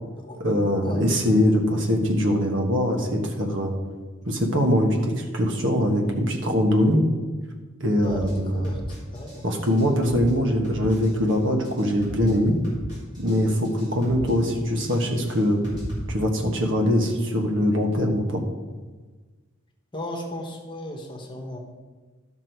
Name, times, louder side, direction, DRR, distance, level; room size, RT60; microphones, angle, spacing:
voice 1, 0.4-3.7 4.2-7.0 7.8-8.6 9.4-12.6 13.2-15.7 16.1-18.4, equal, 65° right, 2 dB, 1.4 m, -22 dB
voice 2, 8.0-9.4 19.9-21.6, left 1 dB, 25° left, 1 dB, 1.3 m, -36 dB
sound 1, 8.0-8.3 8.6-9.4 9.6-10.3 10.6-11.3 11.6-12.3 12.6-13.4 13.6-14.3 14.6-16.0, equal, 20° right, 3.4 m, -37 dB
12.0 x 6.0 x 4.6 m, 1.3 s
head